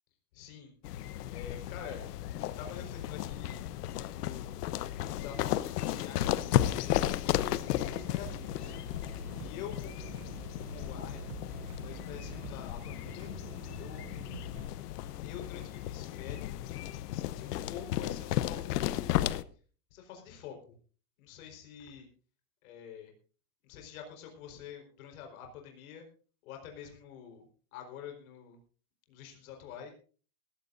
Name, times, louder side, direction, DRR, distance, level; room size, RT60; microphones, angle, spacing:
voice 1, 0.3-0.7 1.3-2.1 2.6-4.5 5.1-6.4 6.6-8.7 9.4-10.2 10.5-11.2 11.8-13.3 13.8-14.1 15.2-16.6 17.1-19.2 19.9-20.6 21.2-22.1 22.6-23.1 23.6-26.1 26.4-28.6 29.1-29.9, left 8 dB, 60° left, 3 dB, 4.6 m, -47 dB
sound 1, 0.8-19.4, left 13 dB, 80° left, 1.0 m, -34 dB
Future Chill Music, 7.7-14.7, right 10 dB, 35° right, 0.7 m, -48 dB
20.5 x 15.5 x 2.6 m, 0.39 s
supercardioid pair, 170°, 46 cm